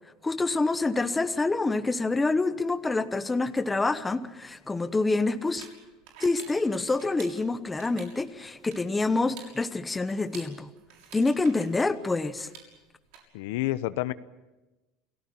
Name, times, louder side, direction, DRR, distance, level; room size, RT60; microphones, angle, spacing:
voice 1, 0.2-5.7 6.2-10.7 11.1-12.5, left 3 dB, 10° left, 11 dB, 1.0 m, -27 dB
sound 1, 4.5-13.2, right 7 dB, 70° right, 6.6 m, -51 dB
voice 2, 13.3-14.1, left 16 dB, 80° left, 15 dB, 0.9 m, -29 dB
29.0 x 17.5 x 8.8 m, 1.1 s
cardioid pair, 160°, 0 cm